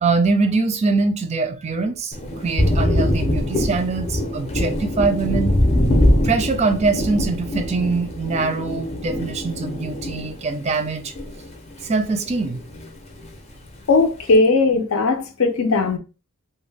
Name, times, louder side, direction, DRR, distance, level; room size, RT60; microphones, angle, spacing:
voice 1, 0.0-5.5 6.2-11.1 11.8-12.6, right 4 dB, 30° right, 0.4 m, -23 dB
Thunder, 2.1-11.9 12.2-13.3, left 1 dB, 30° left, 0.6 m, -23 dB
voice 2, 13.9-16.0, left 3 dB, 75° left, 0.6 m, -18 dB
2.6 x 2.2 x 3.2 m
head